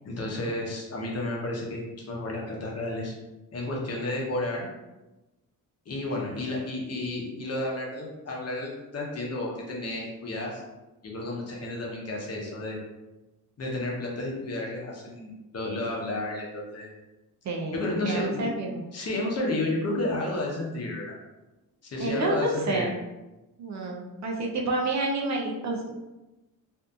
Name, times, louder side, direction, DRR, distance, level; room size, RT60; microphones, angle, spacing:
voice 1, 0.0-3.1 3.5-4.7 5.9-10.6 11.0-12.8 13.6-16.9 17.7-18.4 18.9-21.1 21.8-22.9, left 2 dB, 45° left, -2 dB, 0.8 m, -31 dB
voice 2, 17.4-18.8 22.0-22.9 23.6-25.9, right 2 dB, 50° right, 0 dB, 0.5 m, -29 dB
2.6 x 2.4 x 2.3 m, 1.1 s
cardioid pair, 85°, 36 cm